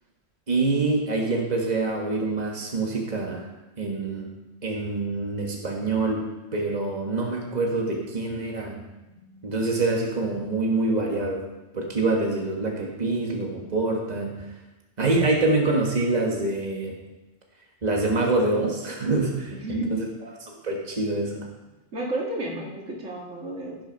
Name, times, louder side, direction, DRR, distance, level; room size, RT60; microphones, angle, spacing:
voice 1, 0.5-3.4 3.8-4.3 4.6-6.2 6.5-8.8 9.4-11.4 11.7-14.3 15.0-16.9 17.8-20.1 20.4-21.5, right 2 dB, 35° right, 0 dB, 1.8 m, -25 dB
voice 2, 9.0-9.8 19.5-19.9 21.9-23.8, right 1 dB, 85° right, -2 dB, 2.5 m, -33 dB
16.0 x 6.3 x 5.4 m, 1.1 s
omnidirectional pair, 1.2 m